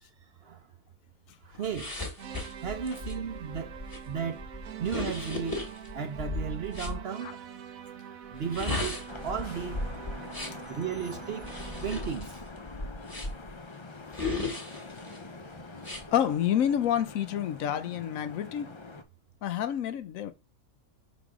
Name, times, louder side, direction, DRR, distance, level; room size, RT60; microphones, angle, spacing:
voice 1, 1.4-1.9 2.6-3.8 4.1-4.5 4.8-5.6 5.9-7.3 8.3-9.8 10.7-11.5 11.8-12.4, right 7 dB, 55° right, 0.8 m, -34 dB
sound 1, 1.7-7.0 8.3-10.7 11.4-13.5 14.1-15.2 15.8-16.0, left 2 dB, 15° left, 1.3 m, -36 dB
sound 2, 2.2-12.3, right 9 dB, 70° right, 1.1 m, -45 dB
Vehicle horn car horn honking / Traffic noise roadway noise, 9.1-19.0, left 3 dB, 40° left, 0.4 m, -45 dB
voice 2, 16.1-18.7 19.4-20.3, left 10 dB, 70° left, 1.0 m, -28 dB
5.2 x 4.0 x 4.9 m
omnidirectional pair, 1.5 m